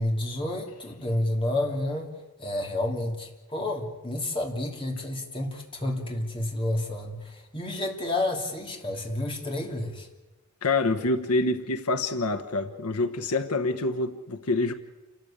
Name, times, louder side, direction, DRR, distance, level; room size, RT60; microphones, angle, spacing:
voice 1, 0.0-2.1 2.4-10.1, left 1 dB, 25° left, 3.0 m, -30 dB
voice 2, 10.6-14.7, left 2 dB, 85° left, 1.2 m, -26 dB
29.0 x 13.0 x 8.7 m
head